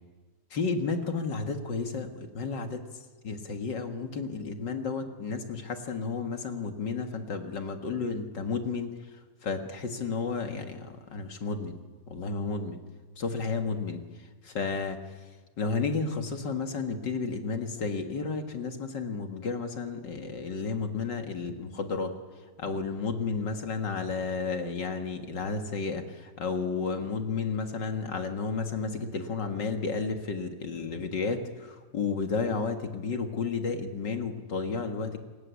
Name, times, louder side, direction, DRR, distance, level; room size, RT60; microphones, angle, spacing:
voice 1, 0.5-2.8 3.2-9.0 9.4-11.8 12.1-12.8 13.2-14.0 14.4-15.0 15.6-22.1 22.6-35.2, left 4 dB, 45° left, 5 dB, 1.9 m, -32 dB
28.0 x 18.5 x 8.4 m, 1.3 s
omnidirectional pair, 3.4 m